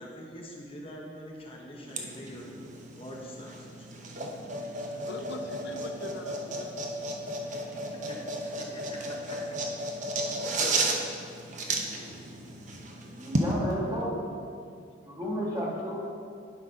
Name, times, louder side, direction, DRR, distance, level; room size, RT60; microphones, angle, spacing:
voice 1, 0.0-2.5 2.9-3.9 7.5-9.8, equal, 30° left, -2 dB, 1.0 m, -45 dB
sound 1, 1.9-13.5, right 2 dB, 40° right, 0.8 m, -33 dB
voice 2, 4.8-6.8 11.5-13.4 15.0-15.5, left 1 dB, 65° left, 5 dB, 0.5 m, -46 dB
voice 3, 13.2-14.2 15.1-16.0, equal, 20° right, -5 dB, 1.9 m, -32 dB
11.5 x 4.2 x 5.2 m, 2.3 s
head